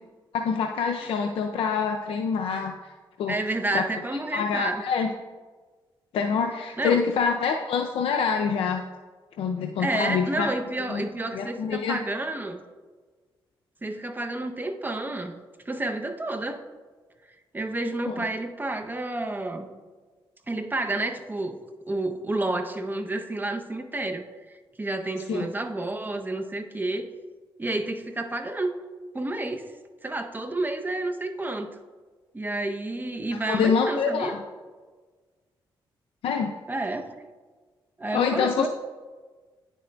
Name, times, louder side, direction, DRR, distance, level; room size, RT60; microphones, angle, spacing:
voice 1, 0.3-2.7 3.2-3.3 3.7-3.8 4.3-5.1 6.1-8.8 9.4-10.5 10.9-11.0 11.3-12.0 18.1-18.2 25.3-25.4 33.5-34.4 36.2-36.5 38.1-38.7, left 6 dB, 85° left, 3 dB, 0.4 m, -25 dB
voice 2, 3.3-4.8 6.8-7.0 9.8-12.6 13.8-15.3 15.7-16.6 17.5-19.7 20.5-21.6 21.9-27.1 27.6-28.8 29.1-29.7 30.0-31.7 32.3-34.4 36.7-37.2 38.0-38.7, right 2 dB, 20° right, 6 dB, 0.6 m, -30 dB
9.3 x 6.3 x 2.2 m, 1.4 s
cardioid pair, 65°, 9 cm